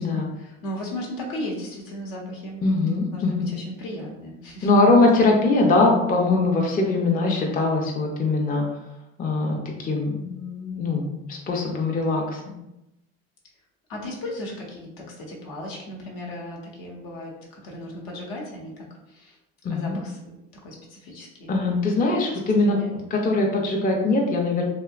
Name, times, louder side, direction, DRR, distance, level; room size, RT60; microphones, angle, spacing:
voice 1, 0.0-2.6 3.1-4.7 13.9-19.4 19.7-20.3 20.6-21.6 22.6-22.9, left 1 dB, 70° left, -2 dB, 0.9 m, -36 dB
voice 2, 2.6-3.5 4.6-8.6 9.2-12.5 19.6-20.0 21.5-24.6, left 3 dB, 25° left, 0 dB, 0.5 m, -22 dB
2.7 x 2.1 x 2.3 m, 0.90 s
hypercardioid pair, 70°, 35 cm